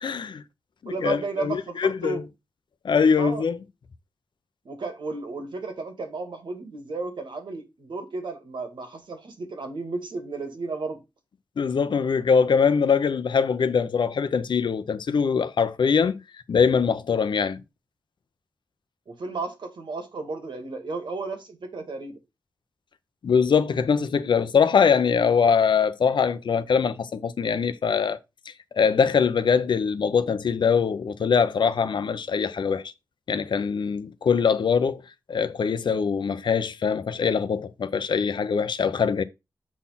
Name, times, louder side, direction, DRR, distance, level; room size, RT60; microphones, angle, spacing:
voice 1, 0.0-0.4 0.8-2.2 2.8-3.6 11.6-16.2 16.5-17.6 23.2-28.2 28.7-32.8 33.3-35.0 35.3-39.2, left 6 dB, 80° left, 0.8 m, -22 dB
voice 2, 0.9-2.2 3.2-3.4 4.7-11.0 19.1-22.2, right 3 dB, 80° right, 2.0 m, -33 dB
7.2 x 4.3 x 5.6 m
wide cardioid pair, 80°, 8 cm